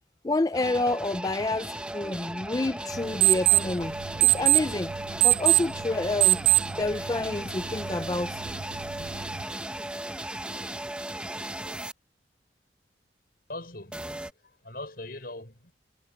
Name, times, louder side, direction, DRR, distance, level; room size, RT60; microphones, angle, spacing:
voice 1, 0.2-3.9 4.2-4.9 5.2-6.4 6.8-8.4, left 2 dB, 20° left, 0.4 m, -28 dB
sound 1, 0.5-11.9 13.9-14.3, right 1 dB, 5° right, 0.8 m, -36 dB
sound 2, 2.9-9.5, right 20 dB, 60° right, 0.4 m, -25 dB
voice 2, 13.5-14.1 14.4-15.7, left 2 dB, 55° left, 6.1 m, -40 dB
head